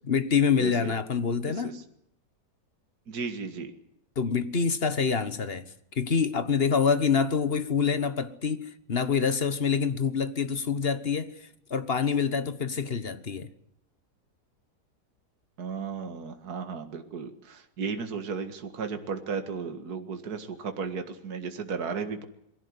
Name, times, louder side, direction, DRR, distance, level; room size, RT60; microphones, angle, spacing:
voice 1, 0.1-1.8 4.2-5.6 5.9-11.4 11.7-13.5, left 6 dB, 35° left, 1.4 m, -26 dB
voice 2, 0.6-0.9 1.5-1.8 3.1-3.7 15.6-22.3, right 5 dB, 60° right, 2.3 m, -35 dB
22.5 x 16.5 x 9.7 m
omnidirectional pair, 1.9 m